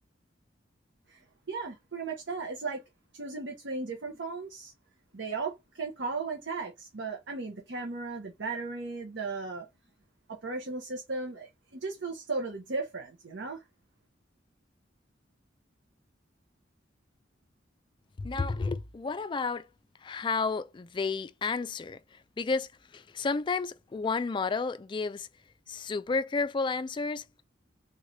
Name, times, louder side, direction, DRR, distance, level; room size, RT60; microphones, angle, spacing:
voice 1, 1.1-2.8 3.1-4.7 5.1-9.7 10.3-13.6, right 3 dB, 70° right, 0.8 m, -36 dB
voice 2, 18.2-19.7 20.0-25.3 25.7-27.2, left 4 dB, 25° left, 0.3 m, -31 dB
3.6 x 3.2 x 2.7 m
head